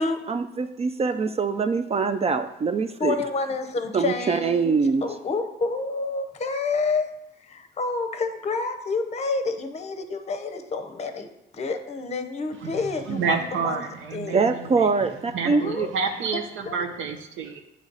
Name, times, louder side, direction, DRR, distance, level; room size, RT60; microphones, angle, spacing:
voice 1, 0.3-3.2 3.9-5.0 14.3-15.9, right 5 dB, 30° right, 7 dB, 0.4 m, -24 dB
voice 2, 3.0-7.1 7.4-11.3 11.5-13.8 14.1-14.4 15.5-15.9 16.3-16.8, left 4 dB, 35° left, 7 dB, 0.7 m, -29 dB
voice 3, 13.1-14.9 15.3-17.6, right 5 dB, 80° right, 4 dB, 0.7 m, -29 dB
9.2 x 3.2 x 3.9 m, 0.86 s
cardioid pair, 90°, 20 cm